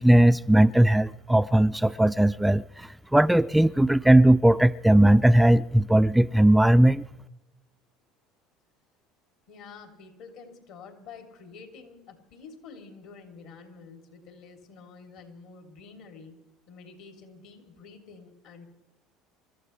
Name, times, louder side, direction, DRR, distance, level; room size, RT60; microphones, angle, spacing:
voice 1, 0.0-7.0, right 1 dB, 5° right, 0.4 m, -19 dB
voice 2, 9.5-16.4 16.7-18.7, left 5 dB, 65° left, 3.4 m, -48 dB
28.0 x 14.0 x 3.4 m
hypercardioid pair, 75°, 0 cm